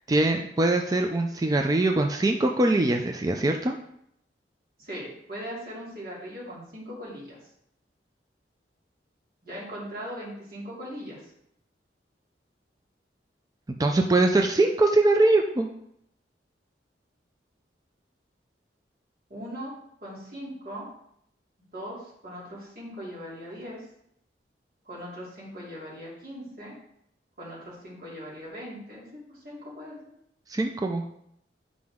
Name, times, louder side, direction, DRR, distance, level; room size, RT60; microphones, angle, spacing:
voice 1, 0.1-3.8 13.8-15.7 30.5-31.0, right 2 dB, 20° right, 3 dB, 0.4 m, -22 dB
voice 2, 4.8-7.4 9.4-11.3 19.3-19.7 20.0-20.9 21.7-23.8 24.8-26.8 27.4-30.0, equal, 55° right, -6 dB, 2.9 m, -39 dB
7.6 x 5.2 x 3.6 m, 0.73 s
head